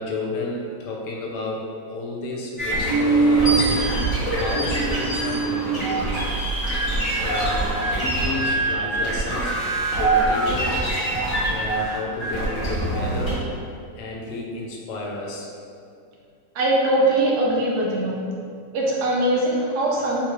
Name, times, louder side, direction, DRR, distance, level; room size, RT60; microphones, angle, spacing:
voice 1, 0.0-3.7 4.2-6.2 7.2-9.5 9.9-10.7 11.5-13.4 13.9-15.5, left 2 dB, 80° left, -2 dB, 1.2 m, -32 dB
sound 1, 2.6-13.3, right 2 dB, 35° left, 1.0 m, -23 dB
sound 2, 2.9-8.4, equal, 50° right, 0.7 m, -37 dB
voice 2, 16.5-18.2 18.7-20.3, right 1 dB, 75° right, -3 dB, 1.1 m, -21 dB
3.5 x 2.3 x 3.0 m, 2.3 s
omnidirectional pair, 1.8 m